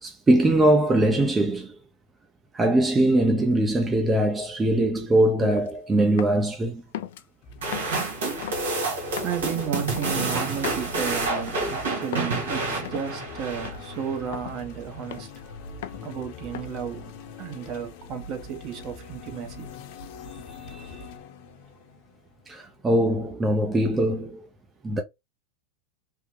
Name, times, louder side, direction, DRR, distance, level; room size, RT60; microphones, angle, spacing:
voice 1, 0.0-1.8 2.5-6.8 20.5-21.0 22.5-24.5 24.8-25.0, right 1 dB, 15° right, 0.5 m, -22 dB
sound 1, 5.4-5.7 6.2-6.5 6.9-7.2 7.7-8.0 8.4-8.7 9.2-9.4 9.9-10.1 10.6-10.9 11.4-11.7 12.1-12.3 12.8-13.1 13.6-13.9 14.3-14.6 15.1-15.4 15.8-16.1 16.5-16.9, left 11 dB, 75° left, 0.4 m, -37 dB
sound 2, 7.4-22.8, left 3 dB, 60° left, 1.0 m, -43 dB
sound 3, 7.6-14.1, right 3 dB, 85° right, 1.5 m, -29 dB
voice 2, 9.2-15.3 16.0-17.1 17.4-19.7, right 8 dB, 45° right, 1.0 m, -33 dB
3.5 x 2.2 x 3.0 m
hypercardioid pair, 115°, 0 cm